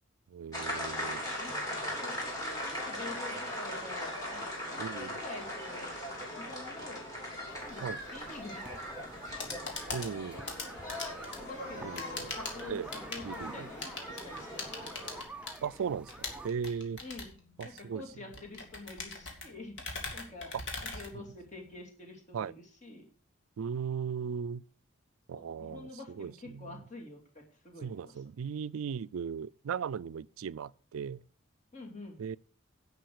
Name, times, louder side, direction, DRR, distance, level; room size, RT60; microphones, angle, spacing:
voice 1, 0.3-1.2 1.5-1.6 4.8-5.2 7.8-8.0 9.9-10.5 11.8-12.3 12.7-12.9 13.2-13.7 15.6-17.0 17.6-18.3 20.5-20.6 21.1-21.2 22.3-22.5 23.6-24.6 25.3-26.8 27.8-31.2 32.2-32.4, right 7 dB, 85° right, 0.4 m, -37 dB
sound 1, 0.5-15.2, left 1 dB, 15° left, 3.2 m, -39 dB
voice 2, 1.0-5.9 6.3-7.1 7.6-7.9 8.1-8.6 11.4-12.8 13.1-13.9 14.2-14.8 17.0-17.3 17.6-19.8 20.1-20.5 20.8-22.5 22.8-23.1 25.3-28.1 31.7-32.2, left 2 dB, 35° left, 2.6 m, -47 dB
sound 2, 7.5-16.5, right 1 dB, 5° right, 0.5 m, -48 dB
sound 3, 9.2-21.8, left 3 dB, 60° left, 2.3 m, -42 dB
10.5 x 5.4 x 6.4 m
head